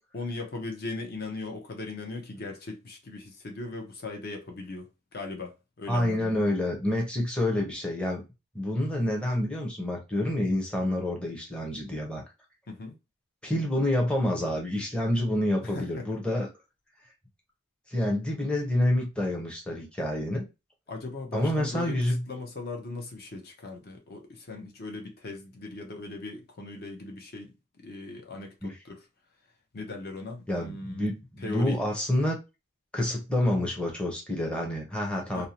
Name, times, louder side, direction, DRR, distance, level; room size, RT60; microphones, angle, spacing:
voice 1, 0.1-6.4 12.7-12.9 15.6-16.1 20.9-22.0 22.3-27.5 27.8-29.1 29.7-31.1 31.4-31.8 35.3-35.5, left 3 dB, 50° left, 0.6 m, -38 dB
voice 2, 5.9-8.2 8.5-12.2 13.4-16.5 17.9-20.5 21.3-22.2 28.6-28.7 30.5-32.4 32.9-35.5, left 1 dB, 5° left, 0.6 m, -28 dB
2.6 x 2.0 x 2.8 m
head